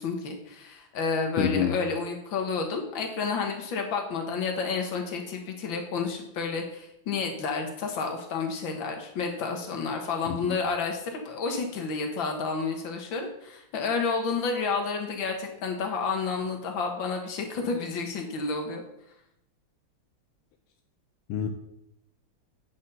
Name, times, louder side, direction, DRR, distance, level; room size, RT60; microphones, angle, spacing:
voice 1, 0.0-18.8, left 4 dB, 70° left, 3 dB, 2.0 m, -30 dB
voice 2, 1.4-1.8 10.3-10.6 21.3-21.5, left 9 dB, 85° left, 5 dB, 1.5 m, -27 dB
8.7 x 5.6 x 5.4 m, 0.81 s
omnidirectional pair, 2.3 m